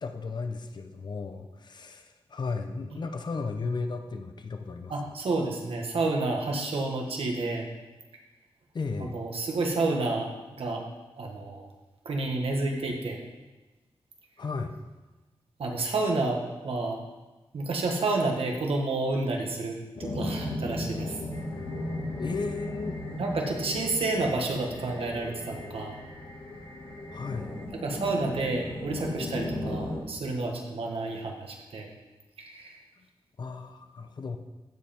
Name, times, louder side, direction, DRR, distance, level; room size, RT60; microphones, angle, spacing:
voice 1, 0.0-5.1 8.7-9.1 14.4-14.7 22.2-23.0 27.1-27.5 33.0-33.1 33.4-34.4, left 4 dB, 50° left, 7 dB, 0.8 m, -35 dB
voice 2, 4.9-7.7 9.0-10.3 10.6-10.8 11.2-11.7 12.1-13.2 15.6-17.0 17.5-21.2 23.2-25.9 27.8-31.9 32.4-32.8, right 2 dB, 85° right, 1 dB, 1.7 m, -30 dB
sound 1, 19.9-30.0, left 1 dB, 85° left, 2.6 m, -36 dB
sound 2, 21.3-27.7, left 2 dB, 70° left, 2.0 m, -46 dB
15.0 x 5.5 x 4.5 m, 1.1 s
wide cardioid pair, 150°, 10 cm